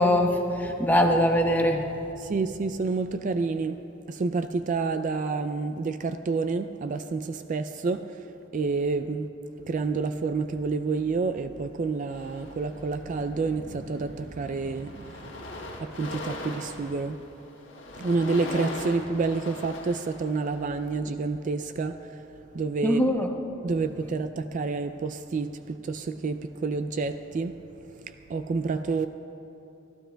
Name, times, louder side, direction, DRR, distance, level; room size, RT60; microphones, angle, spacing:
voice 1, 0.0-1.8 22.8-23.3, left 1 dB, 10° left, 2 dB, 0.9 m, -22 dB
voice 2, 2.2-3.8 4.1-8.0 8.5-9.3 9.7-17.2 18.0-22.0 22.5-23.0 23.6-27.6 28.3-29.1, right 4 dB, 40° right, 10 dB, 0.3 m, -29 dB
sound 1, 12.1-13.1 13.9-14.1 14.4-20.8, left 2 dB, 70° left, 1.6 m, -39 dB
27.0 x 12.5 x 2.3 m, 2.9 s
head